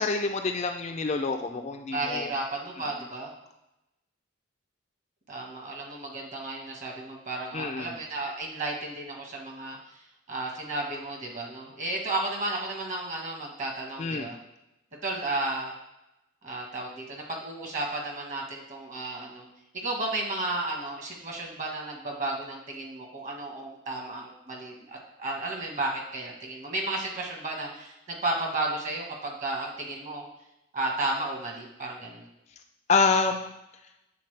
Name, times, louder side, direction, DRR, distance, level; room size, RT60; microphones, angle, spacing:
voice 1, 0.0-2.3 7.5-7.9 14.0-14.3 32.9-33.5, left 4 dB, 35° left, 5 dB, 0.3 m, -27 dB
voice 2, 1.9-3.3 5.3-10.0 10.3-14.4 15.0-15.7 16.4-19.5 19.7-30.3 30.7-32.3, right 2 dB, 35° right, 0 dB, 1.2 m, -33 dB
8.3 x 3.8 x 3.3 m, 0.90 s
head